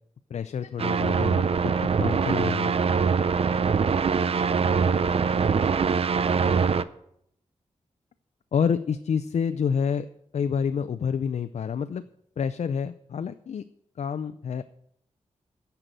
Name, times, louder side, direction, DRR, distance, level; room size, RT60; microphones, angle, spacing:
voice 1, 0.3-2.7 8.5-10.1 10.3-12.0 12.4-13.6 14.0-14.6, left 7 dB, 65° left, 10 dB, 0.5 m, -28 dB
sound 1, 0.8-6.8, right 6 dB, 55° right, 0.5 m, -23 dB
10.0 x 6.9 x 9.0 m, 0.73 s
wide cardioid pair, 115°, 12 cm